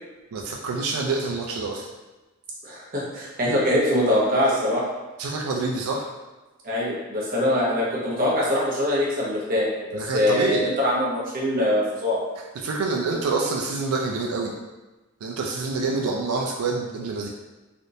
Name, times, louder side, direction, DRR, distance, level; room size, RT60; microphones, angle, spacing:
voice 1, 0.3-1.9 5.2-6.1 9.9-10.7 12.6-14.5 15.2-17.3, right 3 dB, 90° right, 0 dB, 0.4 m, -27 dB
voice 2, 2.6-4.8 6.6-12.2 15.8-15.9, left 1 dB, 40° right, -6 dB, 0.8 m, -23 dB
3.4 x 2.5 x 2.6 m, 1.1 s
head